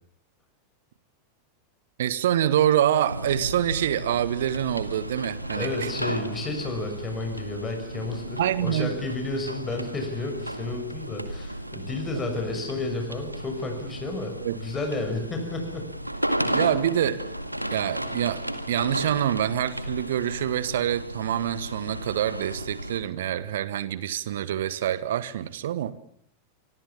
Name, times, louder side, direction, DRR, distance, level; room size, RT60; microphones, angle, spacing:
voice 1, 2.0-5.9 8.4-8.9 14.4-14.6 16.5-17.3 17.7-25.9, right 11 dB, 60° right, 16 dB, 1.6 m, -26 dB
sound 1, 3.1-23.0, right 1 dB, 90° right, 2.0 m, -34 dB
voice 2, 5.5-15.9 16.4-16.6, left 2 dB, 20° left, 4 dB, 6.6 m, -32 dB
26.5 x 25.5 x 7.3 m, 0.63 s
figure-of-eight pair, 90°, 0 cm